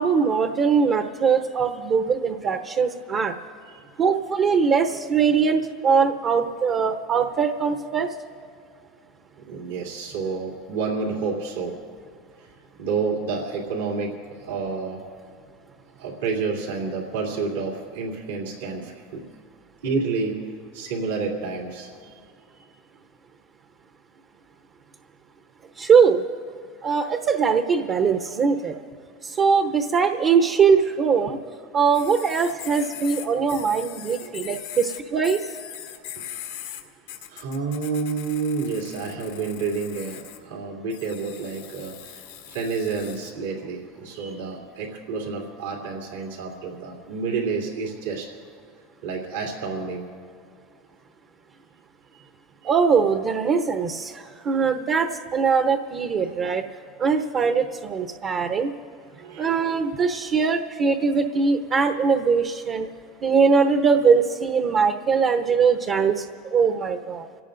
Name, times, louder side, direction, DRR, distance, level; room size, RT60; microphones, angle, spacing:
voice 1, 0.0-3.3 4.0-8.2 25.8-26.3 26.8-28.8 29.2-31.4 31.7-35.4 52.6-56.6 57.0-58.7 59.4-62.9 63.2-67.3, right 5 dB, 40° right, 5 dB, 0.9 m, -21 dB
voice 2, 9.5-11.8 12.4-12.5 12.8-15.0 16.0-19.3 19.8-20.5 20.7-21.9 34.2-34.4 36.1-36.2 37.3-48.3 49.0-50.1 52.1-52.2 52.6-52.7 59.1-59.6, right 4 dB, 85° right, -2 dB, 2.8 m, -29 dB
sound 1, 31.9-36.8 37.1-40.4 40.9-43.3, left 11 dB, 90° left, 1.7 m, -40 dB
29.5 x 17.0 x 2.6 m, 2.3 s
supercardioid pair, 105°, 0 cm